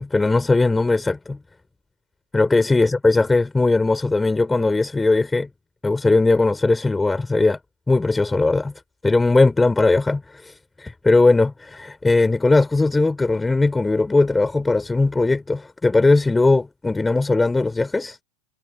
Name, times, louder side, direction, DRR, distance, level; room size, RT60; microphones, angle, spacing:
voice 1, 0.0-1.4 2.3-5.5 5.8-7.6 7.9-8.7 9.0-10.5 10.8-18.2, left 3 dB, 10° left, 4.8 m, -19 dB
figure-of-eight pair, 90°, 0 cm